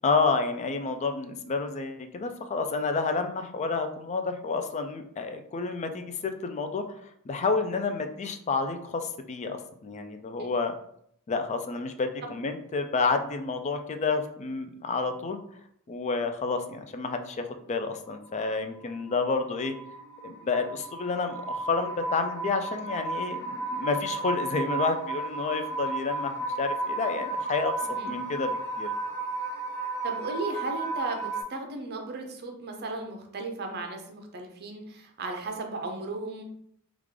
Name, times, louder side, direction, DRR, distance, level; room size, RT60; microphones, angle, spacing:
voice 1, 0.0-6.8 7.3-10.7 11.3-15.4 15.9-19.7 20.2-27.7 28.1-28.9, left 4 dB, 30° left, 7 dB, 0.3 m, -30 dB
sound 1, 18.1-31.4, right 3 dB, 65° left, 0.9 m, -33 dB
voice 2, 27.8-28.1 30.0-36.4, right 3 dB, 50° right, 4 dB, 0.6 m, -35 dB
3.5 x 2.4 x 3.2 m, 0.69 s
head